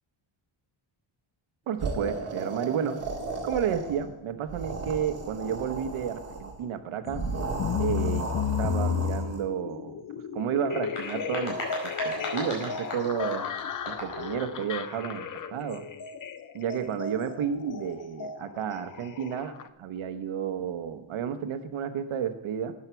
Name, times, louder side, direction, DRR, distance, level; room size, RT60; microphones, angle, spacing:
voice 1, 1.7-3.0 3.4-7.2 7.8-8.3 8.6-11.6 12.0-13.4 13.9-15.3 15.5-15.8 16.5-22.7, right 8 dB, 85° right, 8 dB, 1.2 m, -31 dB
sound 1, 1.8-4.1 4.4-6.5 7.1-9.4, right 3 dB, 30° right, 2.4 m, -35 dB
sound 2, 7.1-19.7, left 6 dB, 40° left, 0.6 m, -33 dB
sound 3, 10.7-14.3, left 1 dB, 85° left, 4.8 m, -37 dB
13.0 x 9.7 x 4.6 m, 0.83 s
wide cardioid pair, 165°, 48 cm